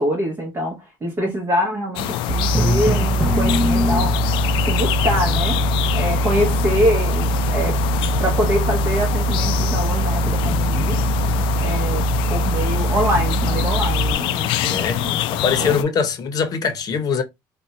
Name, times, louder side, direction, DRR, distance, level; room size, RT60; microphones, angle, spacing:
voice 1, 0.0-4.2 4.6-5.6 5.9-7.8 8.2-11.0 11.6-15.2 15.6-15.8, equal, 30° right, 0.9 m, -24 dB
sound 1, 2.0-15.8, left 12 dB, 75° left, 0.4 m, -24 dB
sound 2, 2.3-14.1, right 3 dB, 55° right, 1.4 m, -22 dB
Drum, 2.5-4.6, left 1 dB, ahead, 0.8 m, -22 dB
voice 2, 14.7-15.0 15.3-17.2, left 6 dB, 45° left, 0.8 m, -22 dB
2.6 x 2.3 x 4.0 m
cardioid pair, 105°, 9 cm